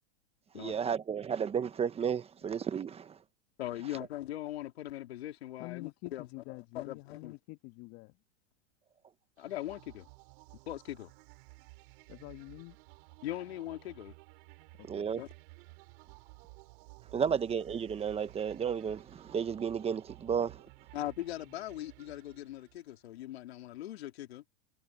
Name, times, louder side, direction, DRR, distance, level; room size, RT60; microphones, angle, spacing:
voice 1, 0.5-3.2 14.8-15.2 17.1-20.7, right 7 dB, 20° right, 1.2 m, -33 dB
voice 2, 3.6-7.4 9.4-10.1 10.7-11.1 13.2-14.1 15.2-15.3 17.1-17.4 20.9-24.4, left 14 dB, 80° left, 3.9 m, -40 dB
voice 3, 5.6-8.2 12.1-12.8 14.7-15.1, left 23 dB, 50° left, 1.9 m, -47 dB
sound 1, 9.4-23.0, right 29 dB, 60° right, 4.7 m, -55 dB
supercardioid pair, 130°, 31 cm